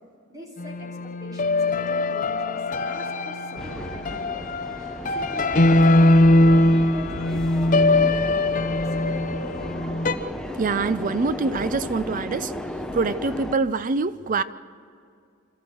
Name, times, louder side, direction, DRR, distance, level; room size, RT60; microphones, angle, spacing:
voice 1, 0.3-4.4 5.0-9.4, equal, 20° right, 3.3 m, -42 dB
sound 1, 0.6-10.1, left 2 dB, 40° left, 0.9 m, -21 dB
sound 2, 3.6-13.5, equal, 5° left, 0.8 m, -35 dB
voice 2, 10.6-12.5 12.9-14.4, right 4 dB, 40° right, 0.5 m, -24 dB
27.0 x 14.0 x 7.8 m
head